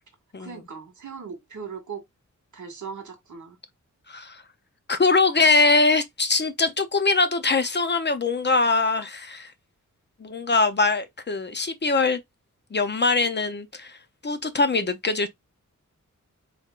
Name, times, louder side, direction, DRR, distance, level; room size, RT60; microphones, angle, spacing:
voice 1, 0.4-2.0 2.5-3.6, right 6 dB, 70° right, 1.7 m, -38 dB
voice 2, 4.1-4.4 4.9-9.5 10.2-12.2 12.7-14.0 14.2-15.3, left 3 dB, 35° left, 0.6 m, -22 dB
4.2 x 3.7 x 2.4 m
wide cardioid pair, 130°, 31 cm